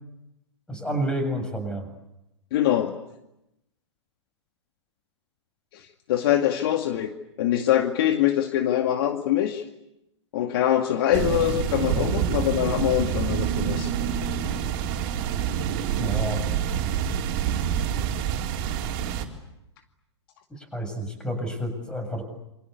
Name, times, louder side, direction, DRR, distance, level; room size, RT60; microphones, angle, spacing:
voice 1, 0.7-1.9 16.0-16.4 20.5-22.2, right 1 dB, 5° left, 7 dB, 7.4 m, -29 dB
voice 2, 2.5-2.9 6.1-7.1 7.4-9.6 10.3-13.9, left 11 dB, 50° left, 6 dB, 2.2 m, -23 dB
sound 1, 11.1-19.2, right 8 dB, 45° right, 4.1 m, -27 dB
28.0 x 24.5 x 8.4 m, 0.88 s
figure-of-eight pair, 115°, 15 cm